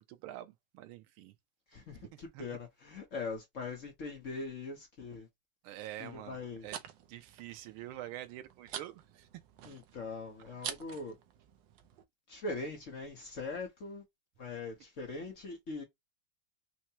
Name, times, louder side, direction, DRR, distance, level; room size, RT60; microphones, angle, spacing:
voice 1, 0.0-1.3 2.1-2.4 5.6-6.8 7.1-9.3, right 13 dB, 90° right, 1.5 m, -46 dB
voice 2, 1.7-5.3 6.0-6.7 9.6-11.2 12.3-14.0 14.4-15.8, left 3 dB, 50° left, 1.0 m, -41 dB
sound 1, 6.2-12.0, right 9 dB, 70° right, 1.3 m, -48 dB
4.5 x 2.1 x 2.8 m
omnidirectional pair, 2.2 m